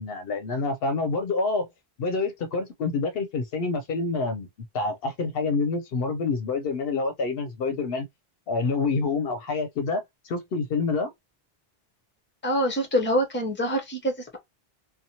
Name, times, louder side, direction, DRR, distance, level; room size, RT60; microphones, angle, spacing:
voice 1, 0.0-1.7 2.0-4.5 4.7-8.1 8.5-11.1, left 3 dB, 70° left, 0.8 m, -27 dB
voice 2, 12.4-14.4, equal, 10° left, 0.7 m, -25 dB
2.7 x 2.2 x 2.7 m
omnidirectional pair, 1.1 m